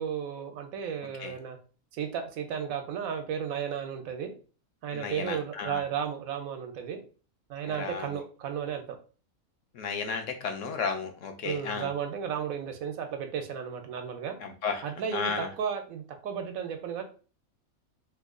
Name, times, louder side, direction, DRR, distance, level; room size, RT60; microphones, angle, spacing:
voice 1, 0.0-1.6 1.9-4.3 4.8-7.0 7.5-8.9 11.4-14.4 14.8-17.0, right 7 dB, 80° right, 5 dB, 1.1 m, -34 dB
voice 2, 4.9-5.8 7.7-8.0 9.7-11.9 14.4-14.8 15.1-15.5, left 5 dB, 70° left, 5 dB, 0.9 m, -33 dB
3.1 x 2.2 x 3.6 m, 0.37 s
omnidirectional pair, 1.5 m